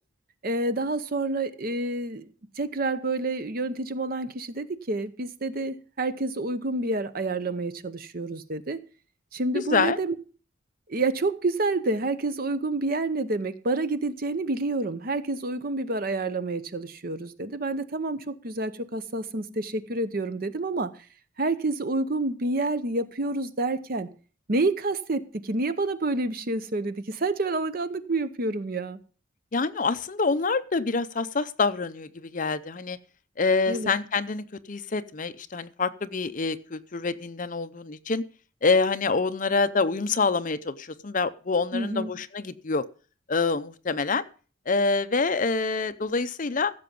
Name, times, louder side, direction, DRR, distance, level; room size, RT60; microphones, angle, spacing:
voice 1, 0.4-2.3 2.6-8.8 9.3-10.2 10.9-20.9 21.4-24.1 24.5-29.0 33.7-33.9 41.7-42.1, right 2 dB, 50° right, 0.8 m, -28 dB
voice 2, 9.5-10.0 29.5-33.0 33.4-38.2 38.6-42.8 43.3-44.2 44.7-46.7, left 4 dB, 40° left, 0.6 m, -26 dB
15.0 x 6.9 x 5.3 m
head